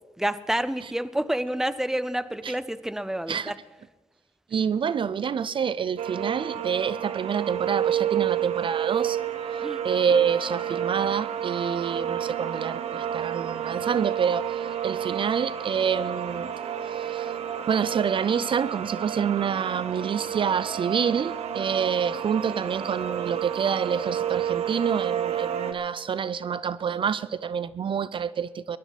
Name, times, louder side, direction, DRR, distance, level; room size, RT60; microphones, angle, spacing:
voice 1, 0.2-3.6 9.6-9.8, right 1 dB, 5° right, 15 dB, 0.7 m, -28 dB
voice 2, 4.5-9.2 9.5-16.5 16.9-17.3 17.7-28.8, right 7 dB, 55° right, 18 dB, 0.4 m, -27 dB
sound 1, 6.0-25.7, right 9 dB, 75° right, 1.0 m, -30 dB
20.5 x 12.0 x 4.1 m, 1.3 s
cardioid pair, 60°, 11 cm